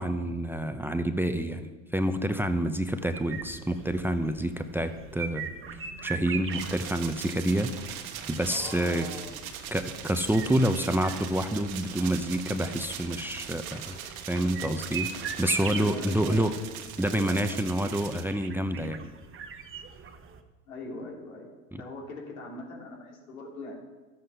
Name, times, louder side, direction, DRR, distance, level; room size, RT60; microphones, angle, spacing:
voice 1, 0.0-7.8 8.3-9.1 9.7-14.0 14.3-16.5 17.0-19.1 21.7-21.8, right 1 dB, 5° right, 8 dB, 0.7 m, -28 dB
sound 1, 3.0-20.4, right 6 dB, 30° right, 1.1 m, -41 dB
sound 2, 6.5-18.2, right 9 dB, 80° right, 1.5 m, -41 dB
voice 2, 8.5-9.3 15.6-16.5 17.1-18.0 20.7-21.5 21.7-23.7, left 3 dB, 90° left, -1 dB, 2.9 m, -41 dB
13.0 x 8.1 x 5.5 m, 1.2 s
hypercardioid pair, 90°, 41 cm